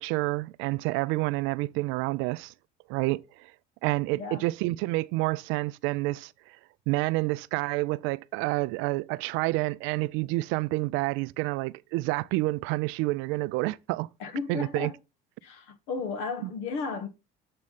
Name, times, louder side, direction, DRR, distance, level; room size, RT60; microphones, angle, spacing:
voice 1, 0.0-2.5 2.9-3.5 3.8-6.3 6.9-14.1 14.5-14.9 16.4-16.5, right 21 dB, 70° right, 0.4 m, -28 dB
voice 2, 4.1-4.5 14.2-15.0 15.4-17.1, left 4 dB, 75° left, 1.3 m, -34 dB
7.6 x 3.1 x 5.4 m
supercardioid pair, 85°, 21 cm